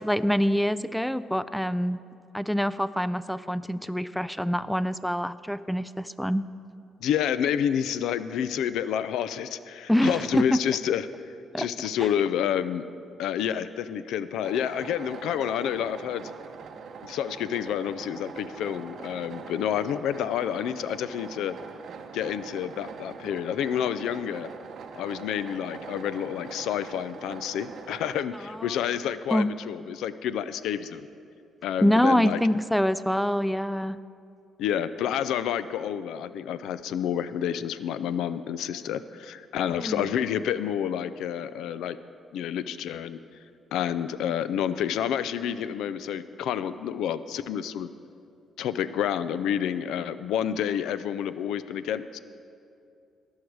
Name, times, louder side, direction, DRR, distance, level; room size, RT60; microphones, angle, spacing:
voice 1, 0.0-2.0 2.3-6.5 9.9-10.6 11.5-11.9 28.5-28.8 29.3-29.5 31.8-34.0 39.7-40.1, equal, ahead, 15 dB, 0.3 m, -25 dB
voice 2, 7.0-12.9 13.2-16.3 17.0-21.6 22.1-24.5 24.9-31.1 31.6-32.4 34.6-42.0 42.3-43.2 43.7-47.9 48.6-52.2, left 9 dB, 85° left, 14 dB, 0.4 m, -29 dB
sound 1, 14.4-28.3, right 6 dB, 60° right, 0.7 m, -43 dB
19.0 x 6.4 x 4.7 m, 2.6 s
cardioid pair, 90°, 0 cm